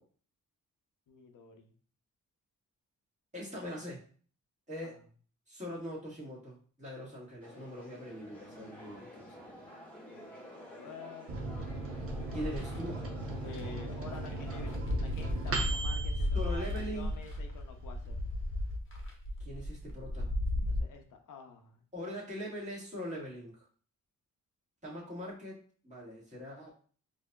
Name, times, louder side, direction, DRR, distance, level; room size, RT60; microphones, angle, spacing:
voice 1, 1.1-1.7 4.8-4.9 10.1-10.4 10.7-11.4 13.4-18.2 20.7-21.8, left 5 dB, 65° left, 4 dB, 0.6 m, -49 dB
voice 2, 3.3-4.0 4.7-5.0 5.5-9.7 12.3-13.1 16.3-17.1 19.4-20.3 21.9-23.7 24.8-26.7, equal, 20° right, -5 dB, 1.6 m, -42 dB
sound 1, 7.4-14.8, equal, 5° left, 1.4 m, -50 dB
Microwave oven, 11.3-17.4 17.8-17.9 18.1-18.8, right 2 dB, 45° right, 0.7 m, -38 dB
sound 2, 11.6-12.8 13.5-13.6 13.9-20.8, left 1 dB, 35° left, 0.9 m, -35 dB
4.5 x 2.7 x 2.2 m, 0.43 s
cardioid pair, 105°, 33 cm